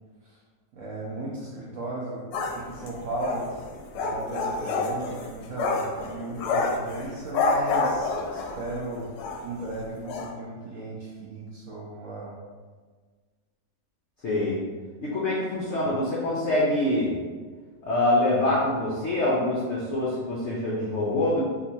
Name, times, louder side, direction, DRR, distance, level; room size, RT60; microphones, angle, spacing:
voice 1, 0.7-2.2 2.5-3.5 3.9-9.0 9.4-12.3, right 2 dB, 65° right, -6 dB, 0.8 m, -35 dB
sound 1, 2.3-8.8 9.2-9.4 9.7-9.8 10.1-10.3, left 3 dB, 90° left, 1.2 m, -28 dB
voice 2, 14.2-14.6 15.0-17.1 17.8-21.4, left 1 dB, 70° left, -6 dB, 0.6 m, -25 dB
3.6 x 2.5 x 2.7 m, 1.5 s
omnidirectional pair, 1.9 m